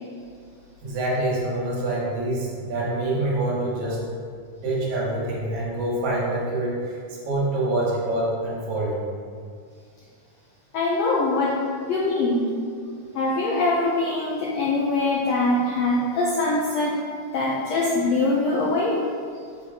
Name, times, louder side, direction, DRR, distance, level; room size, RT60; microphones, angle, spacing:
voice 1, 0.8-4.0 4.6-7.0 7.3-9.0, right 2 dB, 65° right, -5 dB, 2.5 m, -26 dB
voice 2, 10.7-11.5 11.9-12.5 13.1-16.9 17.3-19.0, left 2 dB, 75° left, -5 dB, 1.5 m, -23 dB
6.0 x 5.7 x 3.6 m, 2.2 s
omnidirectional pair, 3.8 m